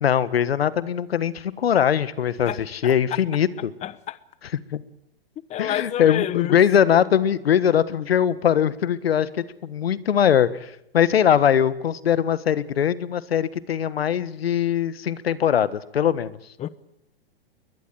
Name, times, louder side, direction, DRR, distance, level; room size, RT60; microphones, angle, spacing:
voice 1, 0.0-3.7 4.7-4.8 5.6-16.4, left 9 dB, 80° left, 1.5 m, -21 dB
voice 2, 3.8-4.2 5.5-6.6 16.6-16.7, left 11 dB, 25° left, 1.0 m, -28 dB
22.0 x 20.5 x 9.3 m
hypercardioid pair, 115°, 30 cm